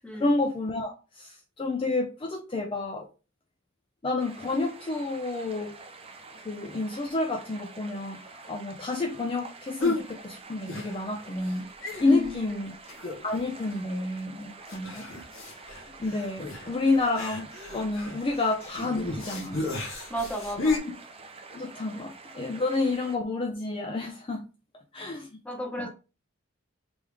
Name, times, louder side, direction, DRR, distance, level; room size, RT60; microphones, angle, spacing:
voice 1, 0.0-3.1 4.0-5.8 6.4-11.6 12.0-12.7 13.2-15.1 16.0-19.6 21.5-24.4 24.9-25.3 25.8-25.9, left 2 dB, 25° left, 3 dB, 0.4 m, -29 dB
sound 1, 4.2-23.2, right 3 dB, 30° right, 0.5 m, -47 dB
sound 2, 9.8-10.1 10.7-11.2 11.5-11.6 11.8-12.4 12.9-13.4 13.7-13.8 14.7-20.8, left 3 dB, 75° left, 1.2 m, -33 dB
voice 2, 12.0-12.6 20.1-20.8 25.4-25.9, equal, 5° left, 1 dB, 1.0 m, -34 dB
3.5 x 3.2 x 3.4 m, 0.33 s
head